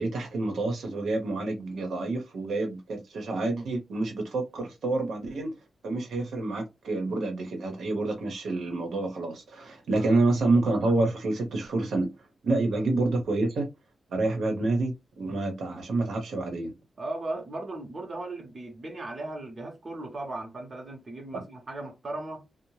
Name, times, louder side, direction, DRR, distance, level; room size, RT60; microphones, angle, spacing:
voice 1, 0.0-5.5 5.8-12.1 12.4-13.7 14.1-16.7 21.3-21.4, right 2 dB, 75° right, 0.8 m, -28 dB
voice 2, 17.0-22.5, right 2 dB, 30° right, 0.8 m, -37 dB
2.7 x 2.0 x 3.1 m
wide cardioid pair, 150°, 0 cm